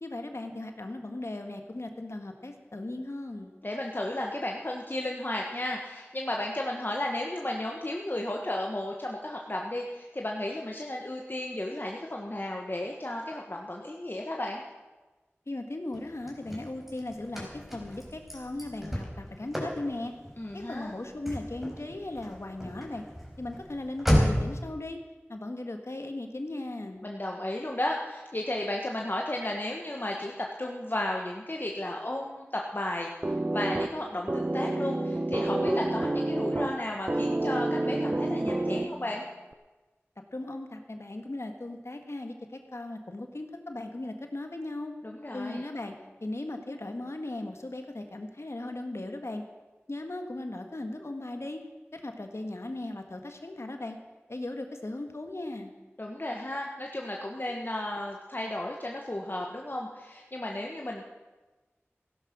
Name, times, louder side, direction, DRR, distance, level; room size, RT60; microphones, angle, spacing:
voice 1, 0.0-3.5 15.5-20.1 20.5-23.0 23.4-25.0 25.3-27.0 40.3-44.9 45.3-46.0 46.2-49.4 49.9-51.6 51.9-54.0 54.3-55.7, left 2 dB, 75° left, 5 dB, 1.6 m, -37 dB
voice 2, 3.6-14.6 20.4-20.9 27.0-39.2 45.0-45.6 56.0-61.0, left 1 dB, 45° left, 0 dB, 1.5 m, -34 dB
Car / Slam, 15.9-24.6, equal, 5° right, 4.4 m, -33 dB
sound 1, 33.2-39.2, right 2 dB, 35° right, 0.6 m, -29 dB
16.0 x 11.5 x 6.1 m, 1.2 s
wide cardioid pair, 45°, 5 cm